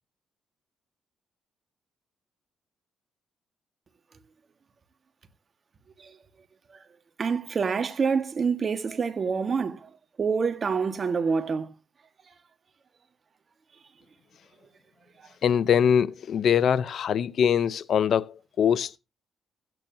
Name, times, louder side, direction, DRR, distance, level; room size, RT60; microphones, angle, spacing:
voice 1, 7.2-9.9 10.2-11.7, right 5 dB, 40° right, 1.6 m, -26 dB
voice 2, 15.4-19.0, left 8 dB, 60° left, 0.6 m, -23 dB
16.5 x 9.1 x 2.7 m
cardioid pair, 90°, 0 cm